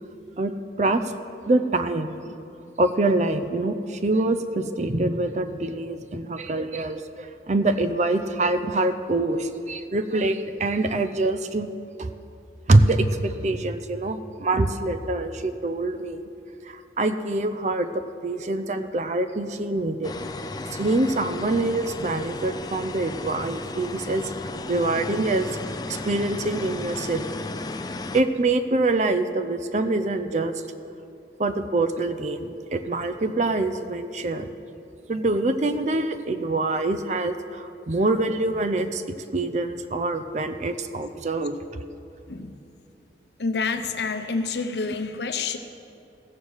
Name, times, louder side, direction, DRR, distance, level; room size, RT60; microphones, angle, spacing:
voice 1, 1.5-2.3 2.8-11.7 12.0-12.1 12.7-16.3 16.7-20.1 20.7-24.3 24.7-25.5 25.9-27.3 28.1-30.5 31.4-34.5 35.1-39.0 39.3-41.6, right 2 dB, 40° right, 9 dB, 0.5 m, -25 dB
sound 1, 20.0-28.2, left 2 dB, 20° left, 0.4 m, -34 dB
voice 2, 43.4-45.6, left 4 dB, 75° left, 8 dB, 0.8 m, -28 dB
15.0 x 7.2 x 6.4 m, 2.6 s
head